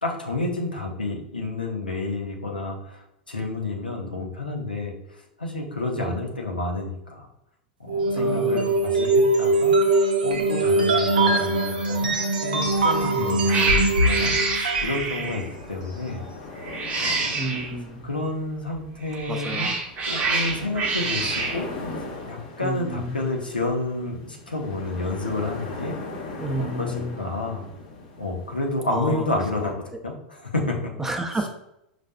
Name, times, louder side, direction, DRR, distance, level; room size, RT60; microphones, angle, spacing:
voice 1, 0.0-4.9 5.4-7.3 7.8-9.7 10.2-16.2 17.0-17.3 18.0-19.7 20.1-21.6 22.0-26.0 26.6-27.7 28.2-30.9, left 2 dB, 90° left, 0 dB, 0.8 m, -30 dB
sound 1, 7.9-15.0, right 2 dB, 75° right, 0.6 m, -21 dB
voice 2, 8.1-8.8 13.1-13.5 15.2-15.4 17.4-18.1 19.3-19.8 22.6-23.3 26.4-27.3 28.9-29.3 31.0-31.5, right 1 dB, 10° right, 4 dB, 0.6 m, -31 dB
Cat, 12.7-13.0 13.5-15.5 16.6-17.7 19.0-21.6, right 3 dB, 30° right, 0.9 m, -27 dB
sound 2, 15.2-29.7, left 3 dB, 55° left, 1.1 m, -39 dB
5.5 x 2.5 x 2.2 m, 0.82 s
figure-of-eight pair, 90°, 5 cm